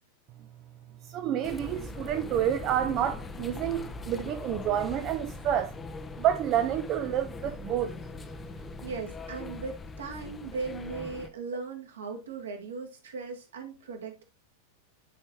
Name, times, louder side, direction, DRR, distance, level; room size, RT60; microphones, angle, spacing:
voice 1, 1.0-5.7 6.2-8.0, right 10 dB, 35° right, 0.5 m, -29 dB
sound 1, 1.4-11.3, left 4 dB, 20° left, 0.6 m, -41 dB
voice 2, 8.8-14.4, right 4 dB, 65° right, 1.6 m, -38 dB
10.0 x 4.4 x 2.8 m
figure-of-eight pair, 90°, 0 cm